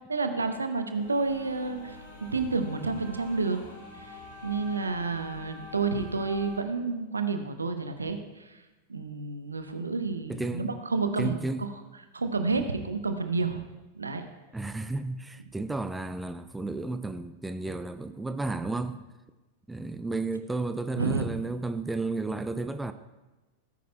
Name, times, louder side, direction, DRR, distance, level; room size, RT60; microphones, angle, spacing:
voice 1, 0.1-3.6 4.0-8.6 8.9-11.7 12.1-13.6 13.9-14.3 21.0-21.2, right 4 dB, 75° right, 8 dB, 0.8 m, -30 dB
sound 1, 0.9-6.6, left 3 dB, 65° left, 2.3 m, -45 dB
voice 2, 10.3-10.8 11.2-11.7 14.5-19.1 19.7-22.9, right 3 dB, 5° right, 10 dB, 0.4 m, -32 dB
17.0 x 9.3 x 2.2 m, 1.1 s
figure-of-eight pair, 90°, 0 cm